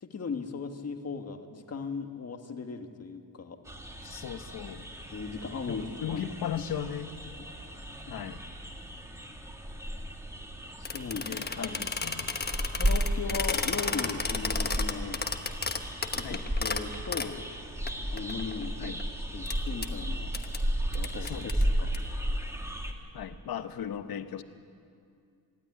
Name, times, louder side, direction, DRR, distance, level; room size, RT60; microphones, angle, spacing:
voice 1, 0.0-3.6 5.1-6.2 7.4-8.0 10.8-11.7 12.7-15.2 16.2-17.4 18.1-18.9 19.3-20.3 20.9-21.5 21.8-21.9, left 5 dB, 40° left, 6 dB, 1.6 m, -38 dB
sound 1, 3.7-22.9, equal, 10° right, 1.9 m, -34 dB
voice 2, 4.0-4.9 5.7-7.1 8.1-8.4 11.3-12.4 16.2-16.4 18.8-19.0 21.2-21.5 23.1-24.4, left 9 dB, 70° left, 10 dB, 1.1 m, -37 dB
sound 2, 10.9-17.3 17.9-18.0 18.2-19.0 19.5-19.6 19.8-19.9 20.3-20.6 20.9-22.0, left 4 dB, 25° left, 1.2 m, -33 dB
25.0 x 12.0 x 9.8 m, 2.4 s
wide cardioid pair, 135°, 37 cm